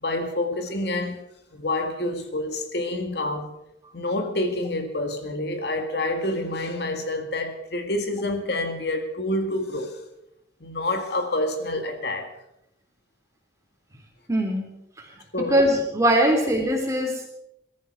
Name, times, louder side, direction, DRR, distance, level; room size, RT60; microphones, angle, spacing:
voice 1, 0.0-1.2 1.5-3.5 3.9-9.9 10.6-12.3 15.3-15.6, left 2 dB, 60° left, 2.0 m, -28 dB
voice 2, 14.3-14.7 15.5-17.3, equal, 15° right, 3.5 m, -21 dB
22.5 x 13.5 x 4.7 m
head